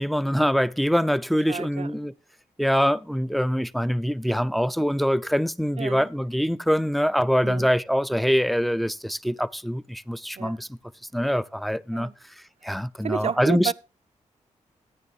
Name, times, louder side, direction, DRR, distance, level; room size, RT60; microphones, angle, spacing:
voice 1, 0.0-2.1 2.6-10.8 11.1-12.1 12.6-13.7, equal, ahead, 0.4 m, -24 dB
voice 2, 1.3-1.9 5.8-6.1 7.4-7.7 10.4-10.6 11.9-12.1 12.6-13.7, right 7 dB, 55° right, 0.5 m, -31 dB
15.0 x 9.3 x 2.7 m
cardioid pair, 65°, 13 cm